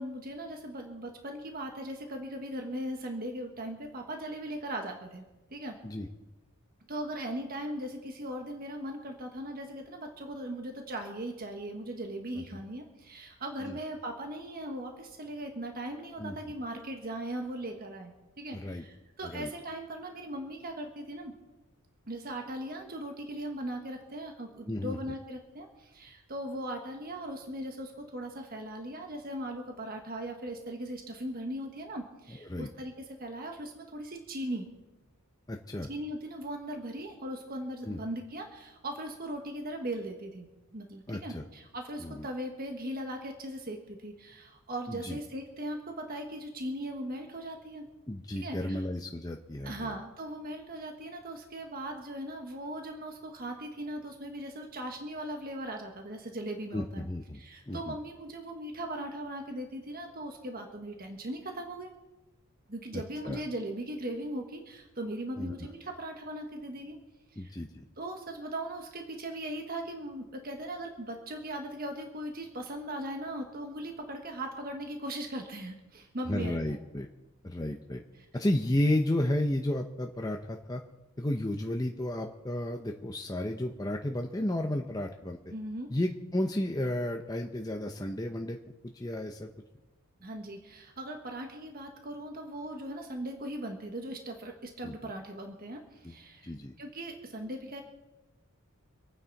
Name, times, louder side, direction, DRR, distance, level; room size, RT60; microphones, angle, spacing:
voice 1, 0.0-5.2 5.5-5.8 6.9-21.3 22.1-34.7 35.9-47.9 48.3-48.8 49.6-57.1 57.3-61.9 62.7-67.0 67.3-67.6 68.0-76.6 78.2-78.3 85.5-85.9 90.2-96.5 96.8-97.8, right 1 dB, 40° right, 3 dB, 1.5 m, -39 dB
voice 2, 18.5-18.8 19.2-19.5 24.7-25.0 32.3-32.7 35.5-35.9 37.9-38.0 41.1-41.4 42.0-42.3 44.9-45.2 48.1-49.9 56.7-57.4 57.7-58.0 62.9-63.4 65.4-65.6 67.4-67.9 76.3-77.1 77.4-78.0 78.3-80.8 81.2-85.4 85.9-88.6 88.8-89.5 94.8-95.1 96.0-96.2 96.4-96.7, left 1 dB, 15° left, 2 dB, 0.8 m, -32 dB
26.0 x 9.4 x 4.1 m, 1.1 s
head